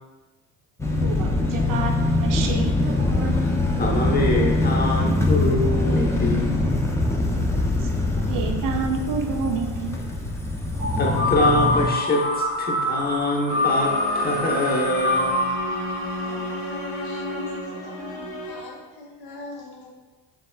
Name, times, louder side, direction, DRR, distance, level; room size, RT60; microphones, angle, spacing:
sound 1, 0.8-11.9, left 2 dB, 5° left, 0.6 m, -23 dB
voice 1, 1.0-3.5 8.3-10.0, right 5 dB, 50° right, 4 dB, 0.6 m, -29 dB
voice 2, 3.8-6.6 11.0-15.3, left 1 dB, 20° left, -1 dB, 1.0 m, -24 dB
sound 2, 10.8-17.6, left 2 dB, 20° right, 1.5 m, -26 dB
sound 3, 13.5-18.9, left 1 dB, 90° left, 0.9 m, -33 dB
voice 3, 16.2-19.9, left 2 dB, 60° left, -2 dB, 1.4 m, -40 dB
5.2 x 3.5 x 2.3 m, 1.2 s
supercardioid pair, 75°, 43 cm